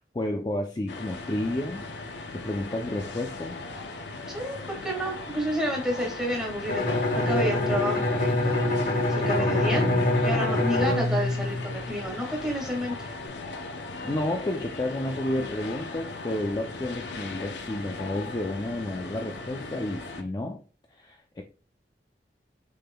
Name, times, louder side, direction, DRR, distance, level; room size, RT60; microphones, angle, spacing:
voice 1, 0.0-1.8 2.3-3.6 9.4-10.0 10.5-11.0 13.7-20.6 20.9-21.4, left 1 dB, 25° left, 0.4 m, -31 dB
sound 1, 0.9-20.2, left 3 dB, 85° left, 0.6 m, -38 dB
voice 2, 4.3-8.6 9.1-9.9 10.2-13.1, equal, 5° right, 1.7 m, -30 dB
Bowed string instrument, 6.7-12.3, left 2 dB, 50° left, 1.0 m, -25 dB
6.6 x 3.6 x 2.2 m
head